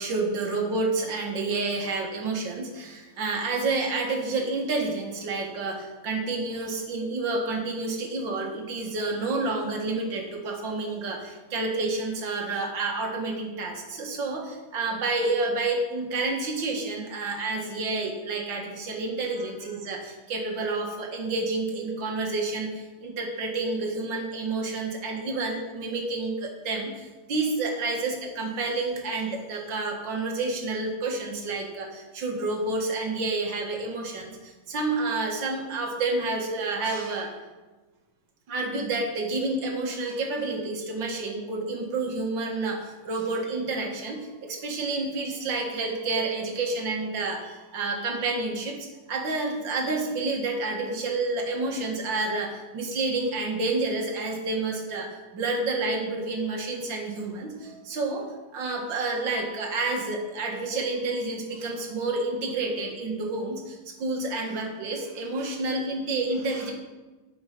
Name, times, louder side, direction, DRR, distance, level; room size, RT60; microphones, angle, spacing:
voice 1, 0.0-37.3 38.5-58.3 58.5-66.7, right 3 dB, 60° right, 1 dB, 2.3 m, -29 dB
8.7 x 7.1 x 5.8 m, 1.2 s
omnidirectional pair, 2.3 m